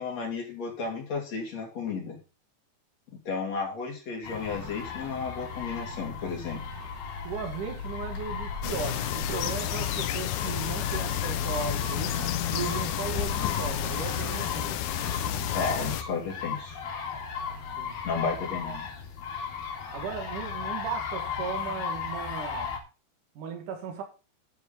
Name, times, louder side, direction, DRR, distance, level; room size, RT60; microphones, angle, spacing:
voice 1, 0.0-2.2 3.2-6.6 15.5-16.8 18.0-18.9, left 4 dB, 40° left, 3.5 m, -33 dB
sound 1, 4.2-22.8, left 6 dB, 55° left, 3.9 m, -35 dB
voice 2, 7.2-14.8 17.8-18.0 19.9-22.7 23.4-24.0, right 6 dB, 55° right, 2.8 m, -36 dB
sound 2, 8.6-16.0, left 13 dB, 85° left, 2.2 m, -31 dB
9.2 x 9.1 x 4.2 m
omnidirectional pair, 5.3 m